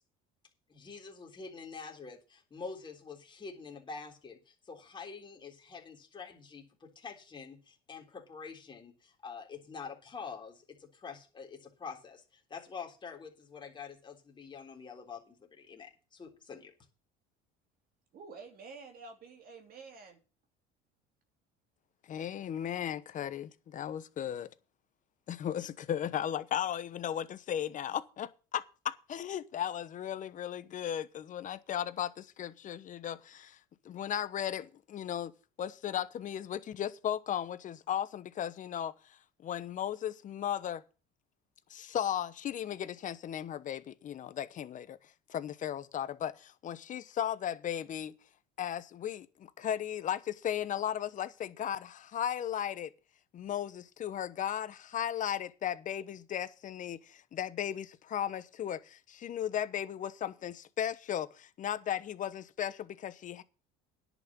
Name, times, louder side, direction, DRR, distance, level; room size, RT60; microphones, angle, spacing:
voice 1, 0.7-16.7, left 5 dB, 25° left, 3.6 m, -46 dB
voice 2, 18.1-20.2, right 4 dB, 45° right, 3.1 m, -49 dB
voice 3, 22.1-24.5 25.3-33.6 33.8-35.3 35.6-38.9 39.4-40.8 41.7-45.0 45.3-48.1 48.6-52.9 53.3-63.4, left 10 dB, 40° left, 1.0 m, -36 dB
10.5 x 6.2 x 8.7 m
cardioid pair, 125°, 20 cm